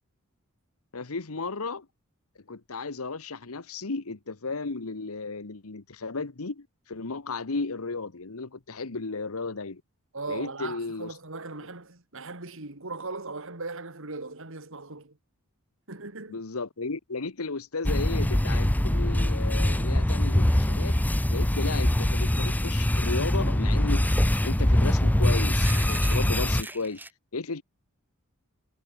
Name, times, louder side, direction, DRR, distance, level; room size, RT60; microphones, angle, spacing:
voice 1, 0.9-1.9 2.5-9.8 10.3-11.1 16.3-21.0 21.3-27.0 27.3-27.6, left 3 dB, 75° left, 1.2 m, -34 dB
voice 2, 10.1-15.2 15.9-16.4, right 3 dB, 65° right, 3.0 m, -38 dB
sound 1, 17.8-26.6, left 1 dB, 10° left, 0.6 m, -23 dB
sound 2, 23.1-23.2 23.5-23.6 24.2-27.1, right 2 dB, 10° right, 3.9 m, -41 dB
head